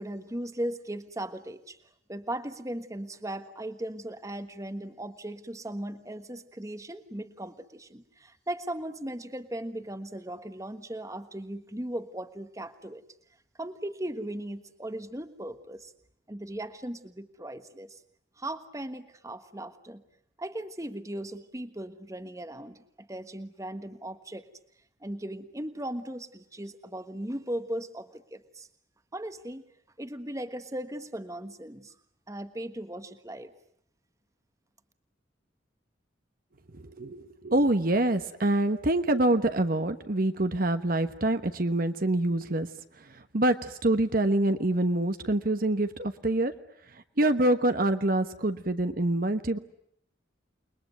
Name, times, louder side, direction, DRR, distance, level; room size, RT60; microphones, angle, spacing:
voice 1, 0.0-1.8 2.1-13.0 13.6-15.9 16.3-18.0 18.4-20.0 20.4-24.5 25.0-28.7 29.1-29.6 30.0-31.9 32.3-33.5, right 1 dB, 15° right, 10 dB, 1.4 m, -37 dB
voice 2, 36.7-42.7 43.0-46.5 46.9-49.6, right 1 dB, 50° right, 9 dB, 1.2 m, -26 dB
29.0 x 21.5 x 9.3 m, 0.71 s
head